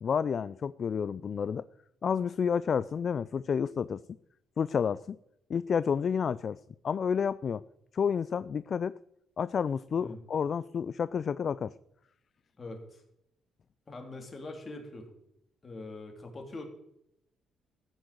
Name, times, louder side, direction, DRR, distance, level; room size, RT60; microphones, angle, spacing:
voice 1, 0.0-1.7 2.0-4.0 4.6-5.2 5.5-7.6 7.9-8.9 9.4-11.7, left 7 dB, 50° left, 17 dB, 0.4 m, -30 dB
voice 2, 12.6-13.0 13.9-15.1 15.6-16.6, left 2 dB, 30° left, 2 dB, 3.4 m, -43 dB
14.5 x 6.7 x 7.8 m, 0.80 s
cardioid pair, 90°, 0 cm